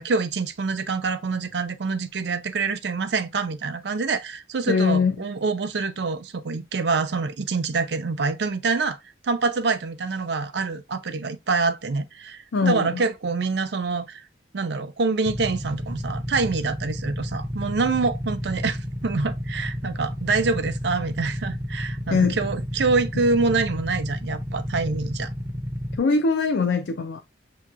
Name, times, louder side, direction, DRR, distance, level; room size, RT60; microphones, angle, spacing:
voice 1, 0.0-9.0 9.2-14.2 14.5-25.3, right 4 dB, 70° right, 0.5 m, -26 dB
voice 2, 4.7-5.2 12.5-13.0 22.1-22.4 26.0-27.2, left 4 dB, 80° left, 0.5 m, -22 dB
Motorcycle / Idling, 15.3-26.0, equal, 15° right, 0.5 m, -31 dB
6.6 x 2.9 x 2.4 m
head